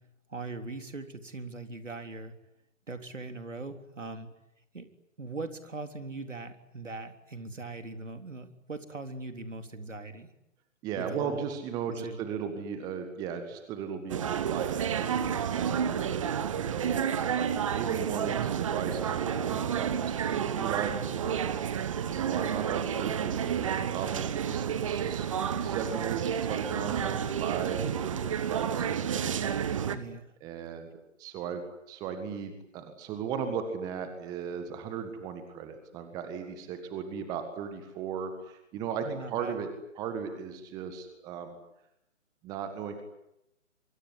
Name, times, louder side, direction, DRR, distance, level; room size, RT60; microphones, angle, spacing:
voice 1, 0.3-2.3 2.9-4.3 4.7-4.9 5.2-10.3 11.0-11.5 11.9-12.3 29.9-30.3 39.0-39.6, right 3 dB, 70° right, 7 dB, 3.7 m, -40 dB
voice 2, 10.8-21.4 22.1-29.5 30.4-30.9 31.2-39.7 39.9-41.6 42.4-43.0, right 7 dB, 10° right, 8 dB, 1.6 m, -37 dB
sound 1, 14.1-30.0, right 8 dB, 25° right, 1.3 m, -30 dB
25.0 x 24.0 x 9.8 m, 0.85 s
figure-of-eight pair, 145°, 39 cm